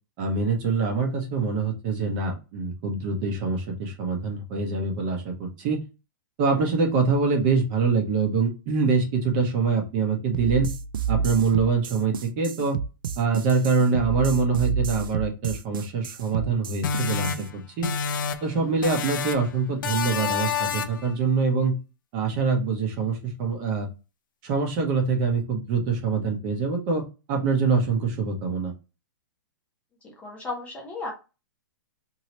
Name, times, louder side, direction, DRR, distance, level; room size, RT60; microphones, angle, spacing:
voice 1, 0.2-5.8 6.4-10.7 11.1-12.8 13.2-17.9 18.4-21.8 22.1-23.9 24.4-28.7, right 4 dB, 35° right, 2 dB, 0.9 m, -24 dB
sound 1, 10.3-17.4, right 6 dB, 80° right, 0.4 m, -29 dB
sound 2, 16.8-18.6 18.8-19.5 19.8-21.1, left 6 dB, 70° left, 0.5 m, -28 dB
voice 2, 30.0-31.1, left 3 dB, 10° left, 0 dB, 0.7 m, -35 dB
3.0 x 2.8 x 2.9 m, 0.30 s
hypercardioid pair, 155°, 11 cm